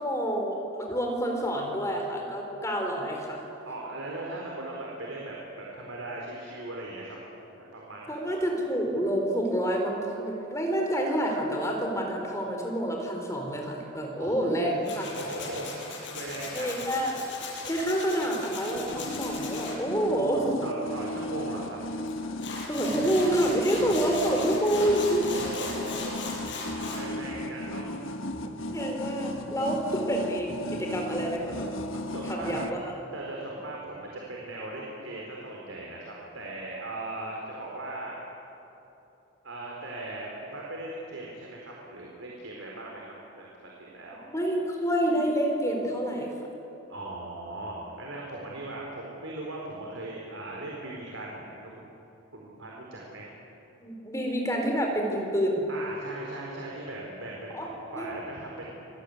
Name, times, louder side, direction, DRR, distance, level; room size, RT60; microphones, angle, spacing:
voice 1, 0.0-3.4 8.1-15.0 16.5-17.1 17.6-20.6 22.7-25.2 28.7-31.7 32.3-32.9 44.3-46.3 53.8-55.7 57.5-57.7 58.0-58.1, right 1 dB, 15° left, 1 dB, 4.3 m, -28 dB
voice 2, 3.6-7.2 7.7-8.2 14.2-14.8 15.2-16.8 20.6-21.8 22.1-22.3 24.7-24.9 25.2-26.2 26.8-27.9 31.9-32.6 33.1-38.2 39.4-44.3 46.9-51.9 52.3-53.3 55.7-58.7, right 2 dB, 80° right, -2 dB, 4.7 m, -39 dB
Tools, 14.8-19.7 22.1-22.2 22.4-27.0, left 4 dB, 60° left, 7.3 m, -38 dB
sound 1, 18.7-32.7, left 1 dB, 80° left, 1.3 m, -36 dB
sound 2, 25.2-33.1, right 1 dB, 40° right, 1.8 m, -47 dB
27.5 x 20.5 x 9.9 m, 3.0 s
head